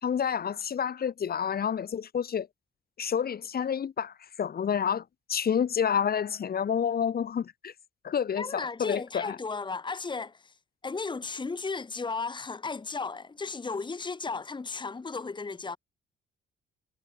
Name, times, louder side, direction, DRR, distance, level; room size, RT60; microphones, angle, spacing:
voice 1, 0.0-2.5 3.0-5.0 5.3-7.7 8.0-9.4, left 8 dB, 50° left, 2.2 m, -29 dB
voice 2, 8.4-10.5 10.8-15.8, left 4 dB, 25° left, 1.7 m, -35 dB
cardioid pair, 90°, 20 cm